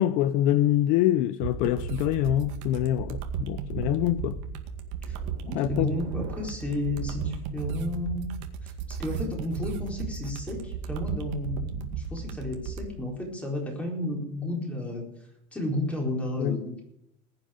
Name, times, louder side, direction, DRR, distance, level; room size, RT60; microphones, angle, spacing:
voice 1, 0.0-4.4 5.5-5.9 16.4-16.6, left 13 dB, 55° left, 0.6 m, -25 dB
sound 1, 1.4-12.9, right 6 dB, 70° right, 2.1 m, -35 dB
voice 2, 5.4-8.3 8.6-15.0 15.5-16.8, left 2 dB, 10° left, 4.3 m, -32 dB
20.0 x 9.0 x 5.1 m
cardioid pair, 160°, 16 cm